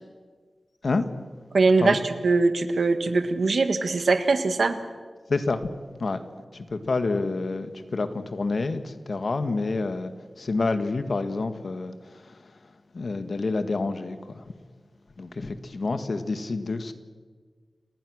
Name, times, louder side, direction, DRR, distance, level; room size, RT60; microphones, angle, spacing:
voice 1, 1.5-4.8, right 3 dB, 75° right, 9 dB, 1.8 m, -22 dB
voice 2, 5.3-5.7 6.0-6.2 6.5-10.1 10.4-12.2 12.9-14.4 15.2-16.9, left 3 dB, 65° left, 9 dB, 1.7 m, -28 dB
30.0 x 19.5 x 6.5 m, 1.5 s
wide cardioid pair, 95°, 0 cm